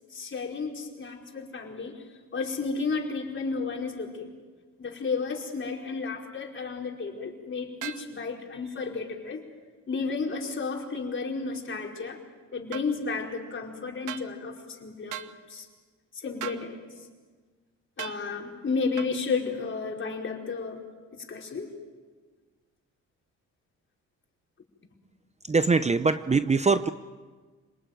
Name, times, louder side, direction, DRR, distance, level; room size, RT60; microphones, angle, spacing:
voice 1, 0.1-2.0 2.3-4.3 4.8-9.4 9.9-12.2 12.5-15.1 15.5-15.7 16.1-16.8 18.0-20.8 21.1-21.8, left 4 dB, 40° left, 0 dB, 4.9 m, -32 dB
sound 1, 7.8-8.1 12.7-12.9 14.1-14.3 15.1-15.3 16.4-16.7 18.0-18.2 19.0-19.1, right 11 dB, 80° right, 1.3 m, -37 dB
voice 2, 25.4-26.9, right 4 dB, 20° right, 12 dB, 0.7 m, -23 dB
27.0 x 19.5 x 9.3 m, 1.4 s
cardioid pair, 90°, 30 cm